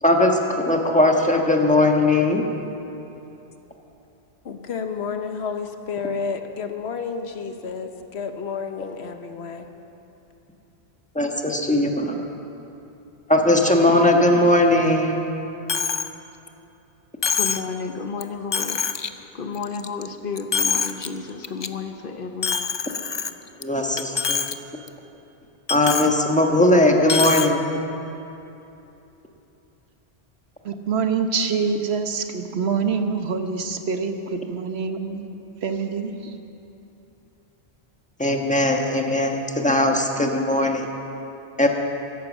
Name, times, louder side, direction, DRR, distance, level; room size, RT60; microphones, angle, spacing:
voice 1, 0.0-2.4 11.1-12.2 13.3-15.2 23.6-24.4 25.7-27.6 38.2-40.9 41.6-41.7, left 1 dB, 5° left, 2 dB, 1.3 m, -19 dB
voice 2, 4.4-9.7, left 5 dB, 85° left, 6 dB, 1.2 m, -31 dB
Coin (dropping), 15.7-16.1 16.5-16.6 17.2-17.7 18.2-18.3 18.5-19.1 19.5-20.1 20.4-21.1 21.4-21.7 22.4-23.6 24.0-24.5 24.9-25.0 25.7-26.1 27.0-27.5, left 6 dB, 40° left, 0.4 m, -25 dB
voice 3, 17.4-18.8 19.3-22.7, left 5 dB, 60° left, 7 dB, 1.0 m, -32 dB
voice 4, 30.6-35.3 35.6-36.3, right 5 dB, 80° right, 7 dB, 1.2 m, -25 dB
14.5 x 11.5 x 7.4 m, 2.9 s
omnidirectional pair, 1.1 m